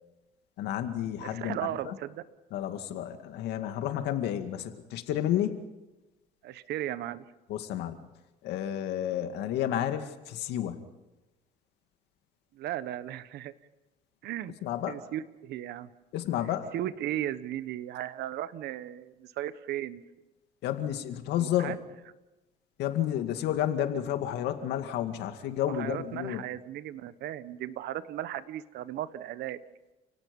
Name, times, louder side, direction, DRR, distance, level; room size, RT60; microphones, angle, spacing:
voice 1, 0.6-1.6 1.8-2.0 2.5-5.6 7.5-7.9 8.4-10.8 14.6-14.9 16.1-16.7 20.6-21.8 22.8-26.4, left 11 dB, 85° left, 8 dB, 2.3 m, -31 dB
voice 2, 1.2-2.2 6.4-7.2 12.5-13.5 14.2-14.5 14.9-15.9 16.7-20.0 21.4-21.8 25.7-29.6, right 12 dB, 75° right, 14 dB, 1.2 m, -36 dB
30.0 x 18.0 x 5.4 m, 1.0 s
cardioid pair, 110°, 17 cm